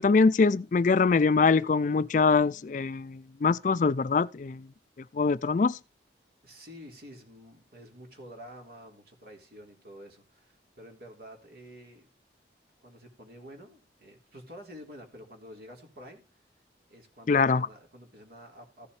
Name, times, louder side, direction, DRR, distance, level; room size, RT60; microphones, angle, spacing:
voice 1, 0.0-4.6 5.1-5.8 17.3-17.7, left 4 dB, 45° left, 0.4 m, -23 dB
voice 2, 6.4-12.1 12.8-16.5 16.9-18.9, equal, 60° right, 3.6 m, -49 dB
15.0 x 7.0 x 3.2 m
head